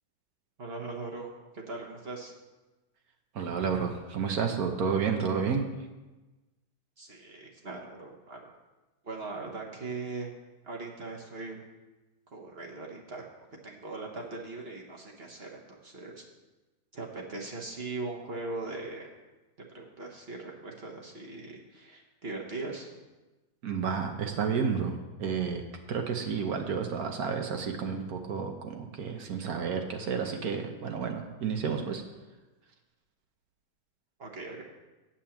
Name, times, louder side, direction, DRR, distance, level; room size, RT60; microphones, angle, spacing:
voice 1, 0.6-1.3 1.5-2.3 7.0-8.5 9.0-10.3 10.6-11.6 12.3-16.2 16.9-19.1 19.6-23.0 34.2-34.6, right 3 dB, 40° right, 0 dB, 1.3 m, -40 dB
voice 2, 3.3-5.7 23.6-25.6 25.9-32.0, right 6 dB, 65° right, 4 dB, 1.3 m, -31 dB
8.8 x 5.8 x 7.1 m, 1.1 s
omnidirectional pair, 1.7 m